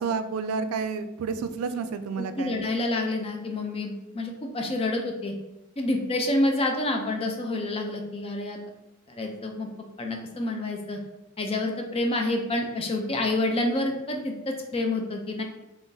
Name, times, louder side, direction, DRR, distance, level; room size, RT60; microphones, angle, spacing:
voice 1, 0.0-2.6, right 5 dB, 90° right, 10 dB, 0.3 m, -30 dB
voice 2, 2.2-5.3 5.8-8.6 9.1-9.7 10.0-11.0 11.4-15.4, left 2 dB, 25° left, 3 dB, 0.4 m, -28 dB
3.7 x 3.3 x 2.6 m, 0.94 s
head